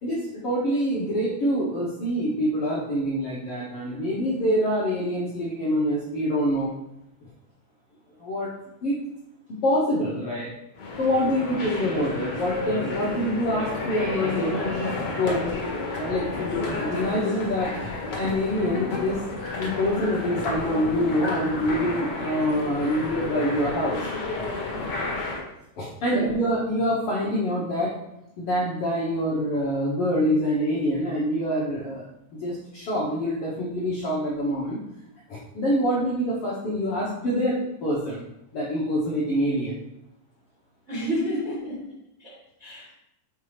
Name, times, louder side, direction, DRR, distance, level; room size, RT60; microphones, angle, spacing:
voice 1, 0.0-6.7 8.2-8.5 8.8-9.0 9.5-10.5 11.0-14.9 15.2-15.5 16.0-17.7 18.2-19.2 19.6-24.1 25.8-27.9 28.4-32.0 32.3-34.8 35.3-38.2 38.5-39.8, equal, 70° left, -5 dB, 1.4 m, -25 dB
sound 1, 10.8-25.4, left 3 dB, 90° left, 0.9 m, -31 dB
voice 2, 40.9-41.8 42.2-42.9, equal, 40° right, -6 dB, 0.9 m, -30 dB
7.2 x 4.6 x 3.3 m, 0.84 s
omnidirectional pair, 4.0 m